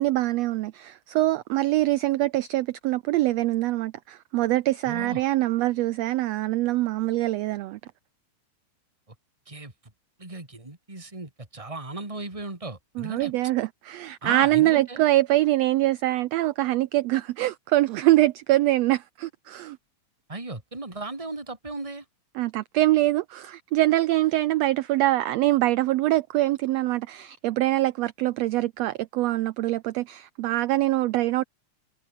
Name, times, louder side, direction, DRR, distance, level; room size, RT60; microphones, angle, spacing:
voice 1, 0.0-7.8 13.0-19.8 22.3-31.4, right 16 dB, 80° right, 1.5 m, -24 dB
voice 2, 4.8-5.2 9.5-9.7 10.2-13.3 14.2-15.0 20.3-22.1, right 2 dB, 10° right, 3.6 m, -36 dB
omnidirectional pair, 3.5 m